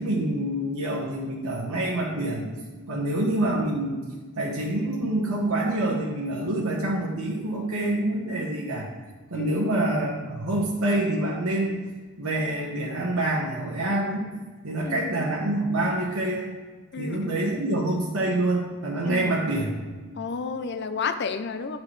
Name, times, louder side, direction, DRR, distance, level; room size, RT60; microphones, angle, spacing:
voice 1, 0.0-2.5 2.9-4.0 4.4-8.9 9.3-11.8 12.2-14.3 14.6-16.6 17.0-19.7, right 1 dB, 75° right, -2 dB, 1.2 m, -26 dB
voice 2, 9.3-9.7 14.9-15.3 16.9-17.6 19.0-19.4 20.2-21.8, left 5 dB, 50° left, 10 dB, 0.5 m, -32 dB
10.5 x 5.9 x 3.2 m, 1.4 s
head